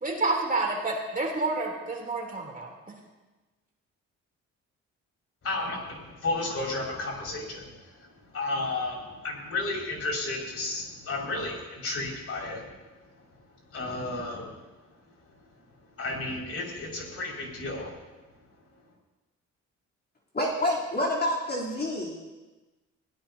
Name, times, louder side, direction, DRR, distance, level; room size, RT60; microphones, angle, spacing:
voice 1, 0.0-3.0, right 3 dB, 30° right, -1 dB, 3.2 m, -29 dB
voice 2, 5.4-12.7 13.1-13.3 13.7-14.5 16.0-18.0, left 2 dB, 50° left, -2 dB, 5.6 m, -33 dB
voice 3, 20.3-22.2, left 1 dB, 35° left, -5 dB, 3.4 m, -28 dB
22.0 x 17.0 x 2.8 m, 1.2 s
cardioid pair, 90°, 30 cm